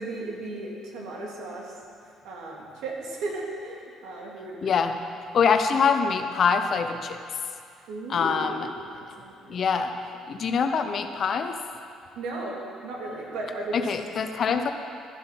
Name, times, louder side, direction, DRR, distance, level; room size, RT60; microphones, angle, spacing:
voice 1, 0.0-1.7 2.2-4.8 5.4-5.5 7.9-9.7 12.1-13.9, right 2 dB, 80° right, -2 dB, 2.4 m, -36 dB
voice 2, 4.6-4.9 5.3-7.2 8.1-8.7 9.5-9.9 10.3-11.6 13.7-14.7, left 6 dB, 45° left, 7 dB, 0.8 m, -24 dB
13.0 x 7.9 x 5.8 m, 2.4 s
cardioid pair, 115°, 0 cm